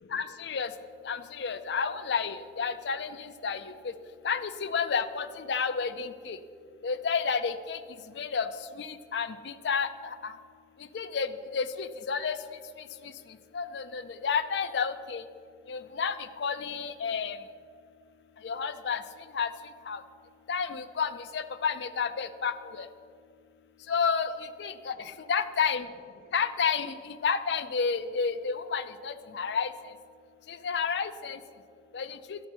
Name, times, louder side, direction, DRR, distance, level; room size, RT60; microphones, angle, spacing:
voice 1, 0.1-0.7 1.0-3.7 4.2-6.4 6.8-7.8 8.2-8.5 8.7-10.3 10.9-12.4 13.0-13.1 13.5-15.2 15.7-17.4 18.4-19.0 19.3-19.5 19.9-20.0 20.5-22.9 23.9-25.9 26.3-29.7 30.5-31.4 31.9-32.4, left 6 dB, 75° left, 11 dB, 0.4 m, -31 dB
12.0 x 4.4 x 5.9 m, 2.2 s
head